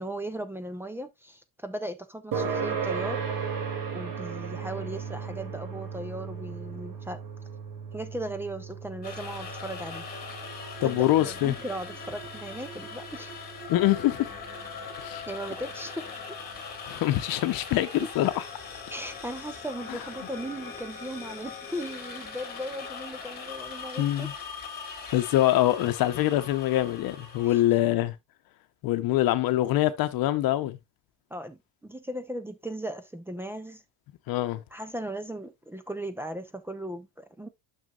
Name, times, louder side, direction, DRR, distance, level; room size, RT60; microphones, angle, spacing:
voice 1, 0.0-3.2 3.9-7.2 7.9-10.0 10.8-13.4 15.3-16.1 18.9-24.3 27.4-27.5 31.3-33.8 34.7-37.5, right 1 dB, 5° right, 0.3 m, -37 dB
sound 1, 2.3-17.2, right 6 dB, 55° right, 2.5 m, -37 dB
sound 2, 9.0-27.7, left 5 dB, 20° left, 2.2 m, -41 dB
voice 2, 10.8-11.6 13.7-14.3 15.0-15.2 16.8-18.4 19.9-20.0 24.0-24.3 25.1-28.1 28.8-30.8 34.3-34.6, left 14 dB, 55° left, 0.9 m, -24 dB
9.3 x 6.4 x 2.3 m
cardioid pair, 180°, 41 cm